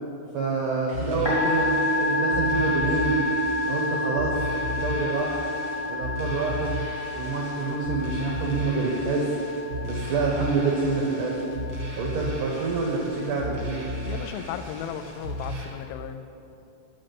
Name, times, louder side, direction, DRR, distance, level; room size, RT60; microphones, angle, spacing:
voice 1, 0.3-3.1 3.7-4.3 4.7-5.4 5.9-6.7 7.1-9.3 9.8-11.4 12.0-13.8, right 4 dB, 80° right, -1 dB, 1.8 m, -27 dB
sound 1, 0.9-15.6, equal, 65° right, 1.1 m, -35 dB
Musical instrument, 1.1-15.8, left 2 dB, 35° left, 0.8 m, -30 dB
voice 2, 14.1-16.3, left 8 dB, 85° left, 9 dB, 3.0 m, -35 dB
8.5 x 6.4 x 8.1 m, 2.8 s
omnidirectional pair, 5.2 m